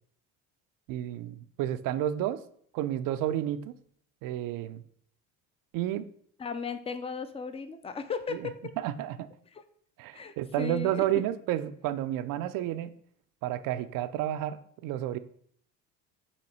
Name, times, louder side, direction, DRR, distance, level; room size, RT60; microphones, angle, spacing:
voice 1, 0.9-2.4 2.7-3.7 4.2-4.8 5.7-6.0 8.3-8.5 8.8-9.3 10.0-12.9 13.4-15.2, right 12 dB, 60° right, 13 dB, 0.5 m, -31 dB
voice 2, 6.4-8.6 9.5-9.6 10.1-11.0, left 5 dB, 15° left, 10 dB, 0.4 m, -36 dB
4.2 x 2.9 x 4.1 m, 0.63 s
hypercardioid pair, 70°, 39 cm